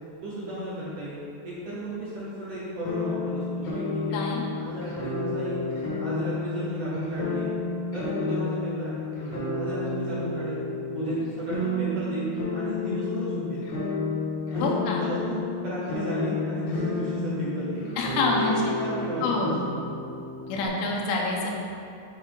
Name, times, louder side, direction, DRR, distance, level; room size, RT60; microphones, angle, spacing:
voice 1, 0.2-1.2 1.4-4.2 4.6-5.6 6.0-7.5 7.9-10.6 10.9-13.6 14.5-14.7 15.0-15.4 15.6-17.9 18.4-19.5, equal, 75° right, -9 dB, 1.9 m, -33 dB
sound 1, 2.8-20.7, left 3 dB, 65° left, 2.9 m, -31 dB
voice 2, 4.1-4.4 14.6-15.0 18.0-18.6 19.2-19.6 20.5-21.5, left 3 dB, 90° left, -2 dB, 3.3 m, -26 dB
12.0 x 4.1 x 3.7 m, 2.7 s
omnidirectional pair, 5.4 m